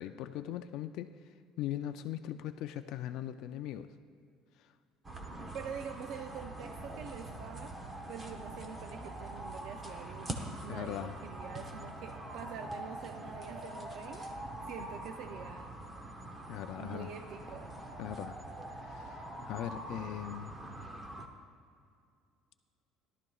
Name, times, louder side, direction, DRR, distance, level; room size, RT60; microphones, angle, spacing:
voice 1, 0.0-3.9 4.6-4.7 10.7-11.2 16.5-17.1 18.0-18.4 18.7-20.6, left 11 dB, 55° left, 9 dB, 0.3 m, -40 dB
sound 1, 5.0-21.3, right 1 dB, 15° right, 0.7 m, -44 dB
voice 2, 5.5-7.7 8.1-14.3 14.5-15.7 16.8-17.8, right 7 dB, 50° right, 6 dB, 0.4 m, -46 dB
17.5 x 12.0 x 2.3 m, 2.3 s
cardioid pair, 180°, 0 cm